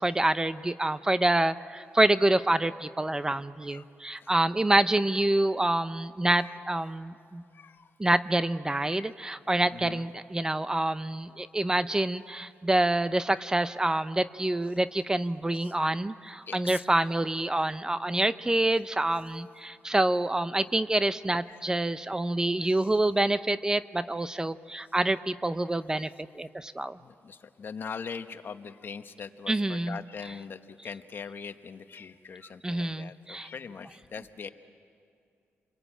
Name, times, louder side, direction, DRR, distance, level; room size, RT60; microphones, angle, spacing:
voice 1, 0.0-7.4 8.0-27.0 29.5-30.0 32.6-33.5, right 1 dB, 15° right, 13 dB, 0.6 m, -27 dB
voice 2, 7.5-7.9 8.8-9.1 9.7-10.0 15.6-15.7 16.5-16.8 21.5-21.6 22.6-22.8 27.0-34.5, left 6 dB, 50° left, 9 dB, 1.1 m, -42 dB
29.5 x 22.0 x 8.9 m, 2.4 s
cardioid pair, 110°, 5 cm